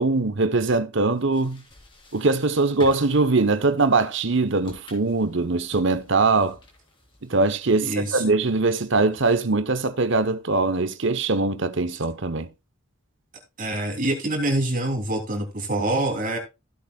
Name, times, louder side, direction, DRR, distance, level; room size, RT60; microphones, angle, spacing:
voice 1, 0.0-1.6 2.1-6.6 7.2-12.5, right 3 dB, 60° right, 1.0 m, -22 dB
sound 1, 1.1-8.4, left 1 dB, 25° left, 4.2 m, -49 dB
voice 2, 7.8-8.2 13.6-16.4, right 1 dB, 40° right, 3.2 m, -25 dB
16.0 x 8.1 x 2.4 m
head